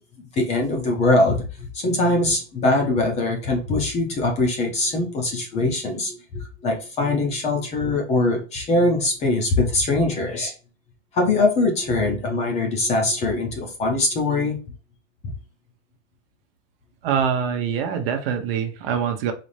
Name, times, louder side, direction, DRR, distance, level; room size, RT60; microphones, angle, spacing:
voice 1, 0.4-1.4 1.7-10.5 11.1-14.6 15.2-15.3, left 2 dB, 20° left, 0.6 m, -22 dB
voice 2, 17.0-19.3, right 7 dB, 55° right, 0.8 m, -24 dB
4.1 x 2.7 x 3.2 m
supercardioid pair, 170°, 35 cm